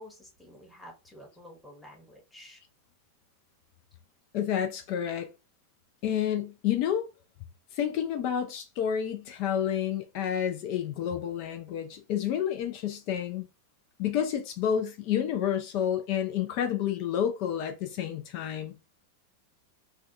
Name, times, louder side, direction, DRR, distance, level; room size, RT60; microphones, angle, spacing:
voice 1, 0.0-2.6, left 1 dB, 5° left, 1.1 m, -50 dB
voice 2, 4.3-5.3 6.0-7.1 7.7-13.5 14.0-18.8, left 9 dB, 45° left, 0.5 m, -29 dB
3.3 x 2.3 x 2.5 m
figure-of-eight pair, 90°, 0 cm